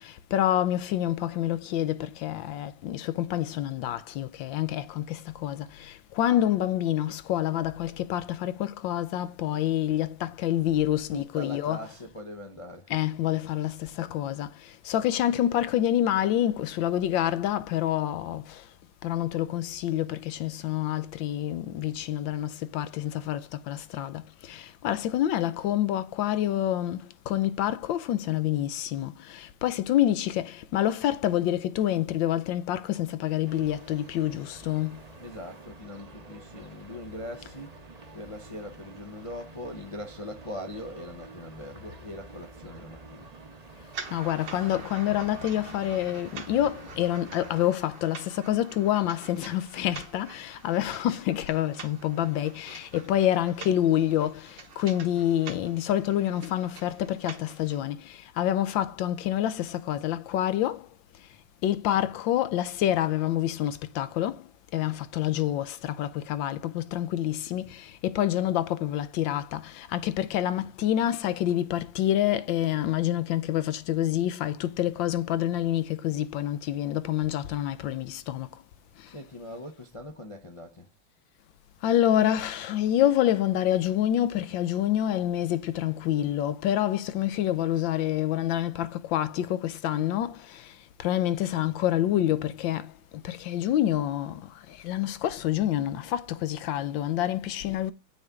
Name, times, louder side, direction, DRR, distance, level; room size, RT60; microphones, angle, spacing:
voice 1, 0.0-11.8 12.9-18.7 19.0-35.0 44.1-60.9 61.6-78.6 79.0-79.1 81.8-97.9, left 12 dB, 75° left, 1.4 m, -27 dB
voice 2, 11.1-12.9 35.2-37.8 38.1-43.3 79.1-80.9, left 1 dB, 45° left, 0.4 m, -41 dB
sound 1, 33.4-47.7, right 2 dB, 30° right, 0.8 m, -48 dB
sound 2, 43.9-57.8, right 6 dB, 65° right, 1.9 m, -46 dB
9.2 x 6.4 x 3.6 m
omnidirectional pair, 2.1 m